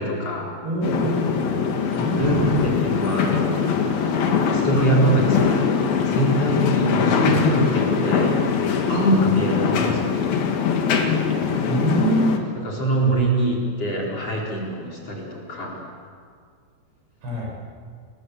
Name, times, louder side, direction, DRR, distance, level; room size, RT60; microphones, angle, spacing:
voice 1, 0.0-0.5 2.1-4.1 4.5-5.6 6.0-8.3 8.9-10.1 11.5-11.6 12.6-15.8, right 1 dB, 35° left, -1 dB, 5.1 m, -23 dB
voice 2, 0.6-3.2 7.2-7.4 9.7-10.0 11.7-12.4 17.2-17.6, right 1 dB, 65° right, -2 dB, 9.2 m, -26 dB
sound 1, 0.8-12.4, left 6 dB, 60° left, 3.4 m, -22 dB
29.5 x 22.0 x 8.2 m, 2.1 s
omnidirectional pair, 5.4 m